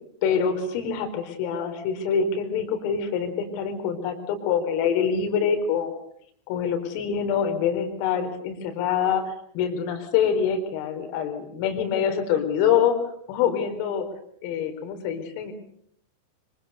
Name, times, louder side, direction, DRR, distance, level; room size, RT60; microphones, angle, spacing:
voice 1, 0.2-5.9 6.5-13.0 13.3-14.1 14.4-15.5, left 7 dB, 45° left, 7 dB, 4.3 m, -25 dB
25.0 x 24.5 x 6.6 m, 0.68 s
figure-of-eight pair, 90°, 0 cm